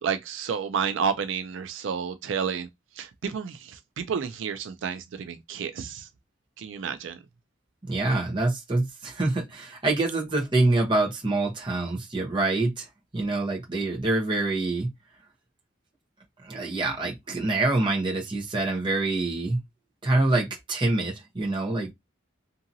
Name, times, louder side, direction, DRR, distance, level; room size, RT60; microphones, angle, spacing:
voice 1, 0.0-2.7 3.0-6.1 6.6-7.2, right 6 dB, 80° right, 0.4 m, -30 dB
voice 2, 7.8-12.9 13.1-14.9 16.4-19.6 20.0-21.9, right 2 dB, 25° right, 0.9 m, -26 dB
2.8 x 2.6 x 2.6 m
head